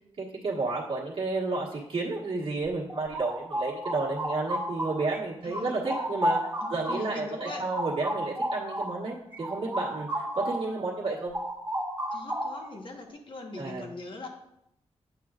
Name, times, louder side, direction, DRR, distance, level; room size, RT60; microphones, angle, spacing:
voice 1, 0.2-6.4 6.7-11.4 13.6-13.9, right 3 dB, 55° right, -6 dB, 1.4 m, -31 dB
sound 1, 2.7-5.2 5.5-10.7 11.0-12.8, equal, 15° right, 1.2 m, -33 dB
voice 2, 5.4-6.1 6.6-7.7 12.1-14.3, left 2 dB, 50° left, 1 dB, 1.2 m, -41 dB
9.0 x 7.7 x 2.5 m, 0.79 s
wide cardioid pair, 150°, 11 cm